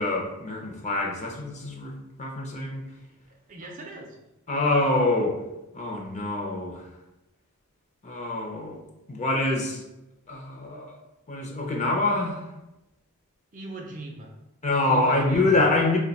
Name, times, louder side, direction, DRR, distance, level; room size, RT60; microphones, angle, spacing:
voice 1, 0.0-1.9 2.2-2.8 4.5-5.4 5.7-6.8 8.0-8.8 9.1-9.8 10.3-10.9 11.3-12.4 14.6-16.0, left 2 dB, 30° left, 0 dB, 0.5 m, -25 dB
voice 2, 3.0-4.2 13.5-14.4 14.9-16.0, right 2 dB, 35° right, 1 dB, 0.4 m, -41 dB
2.7 x 2.1 x 3.9 m, 0.95 s
head